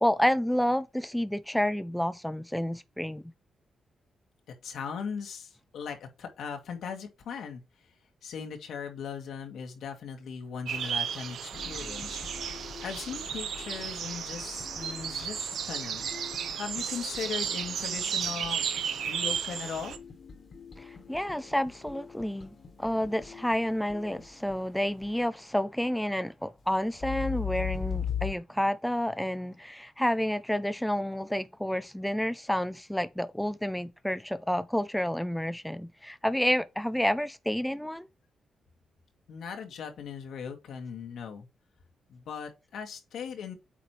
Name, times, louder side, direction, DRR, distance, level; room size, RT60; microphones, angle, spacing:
voice 1, 0.0-3.3 20.8-38.1, equal, 5° left, 0.5 m, -29 dB
voice 2, 4.6-7.6 8.2-12.5 12.8-16.1 16.6-18.6 19.1-19.9 39.3-41.5 42.1-43.5, left 6 dB, 80° left, 2.0 m, -39 dB
sound 1, 10.7-20.0, right 7 dB, 80° right, 1.1 m, -34 dB
sound 2, 11.5-25.2 27.0-28.3, left 7 dB, 50° left, 1.6 m, -41 dB
8.3 x 4.3 x 3.3 m
cardioid pair, 95°, 0 cm